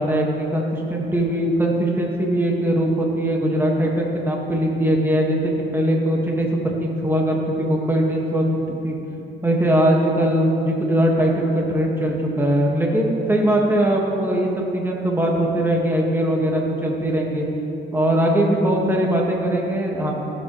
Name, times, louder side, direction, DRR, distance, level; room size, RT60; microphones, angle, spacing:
voice 1, 0.0-8.5 8.8-9.0 9.4-17.4 17.9-20.1, right 1 dB, 10° right, -1 dB, 1.6 m, -21 dB
16.0 x 7.6 x 3.1 m, 3.0 s
cardioid pair, 90°, 20 cm